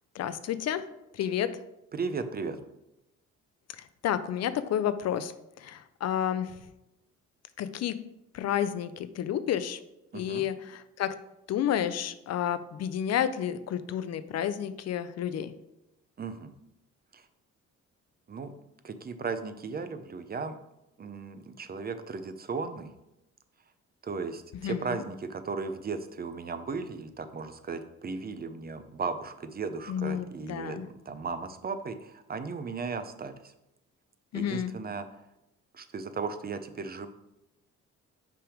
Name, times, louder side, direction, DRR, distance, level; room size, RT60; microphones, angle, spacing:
voice 1, 0.1-0.8 1.1-1.6 3.8-5.3 5.6-6.6 7.6-8.0 8.3-9.8 10.1-11.1 11.5-15.5 24.5-25.0 29.9-30.9 34.3-34.7, left 10 dB, 60° left, 13 dB, 0.5 m, -30 dB
voice 2, 1.9-2.6 10.1-10.5 16.2-16.5 17.1-17.2 18.3-18.5 18.8-20.6 21.0-22.9 24.0-33.5 34.3-35.1 35.7-37.1, right 4 dB, 30° right, 10 dB, 0.5 m, -36 dB
5.9 x 3.5 x 4.9 m, 0.89 s
cardioid pair, 90°, 30 cm